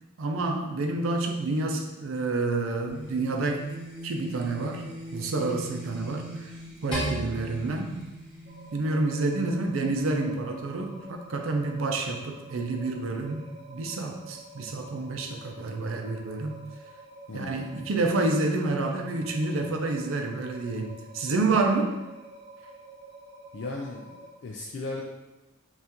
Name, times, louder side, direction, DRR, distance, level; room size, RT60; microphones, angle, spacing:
voice 1, 0.2-3.7 4.0-4.8 5.1-6.5 6.8-7.9 8.7-13.4 13.7-16.6 17.3-21.9, right 3 dB, 85° right, 3 dB, 0.5 m, -28 dB
sound 1, 2.9-9.5, equal, 5° right, 1.3 m, -42 dB
sound 2, 6.9-9.3, equal, 25° left, 1.4 m, -36 dB
sound 3, 8.5-24.3, right 2 dB, 50° right, 0.9 m, -48 dB
voice 2, 17.3-17.8 23.5-25.0, left 2 dB, 55° left, -1 dB, 0.4 m, -37 dB
5.5 x 2.4 x 2.9 m, 1.1 s
head